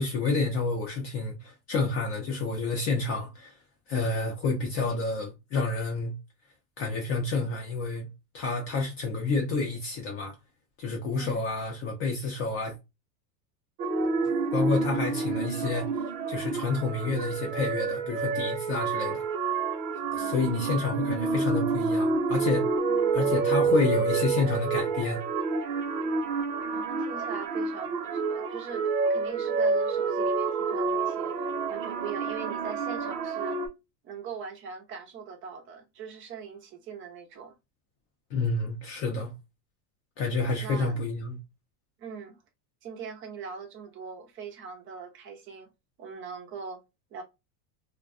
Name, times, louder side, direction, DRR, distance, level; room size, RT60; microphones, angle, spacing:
voice 1, 0.0-3.5 3.9-6.1 6.8-8.1 8.3-10.3 10.8-12.7 14.5-15.9 16.3-19.2 20.1-22.7 23.1-25.2 38.3-39.3 40.2-41.4, left 3 dB, 30° left, 0.5 m, -29 dB
sound 1, 13.8-33.7, right 4 dB, 65° right, 0.8 m, -28 dB
voice 2, 20.2-20.9 22.9-23.3 26.7-28.8 29.1-31.3 31.7-33.6 34.0-37.6 40.6-41.0 42.0-42.4 42.8-45.7 46.0-46.8 47.1-47.2, right 6 dB, 25° right, 0.5 m, -41 dB
2.5 x 2.2 x 2.3 m
supercardioid pair, 150°, 49 cm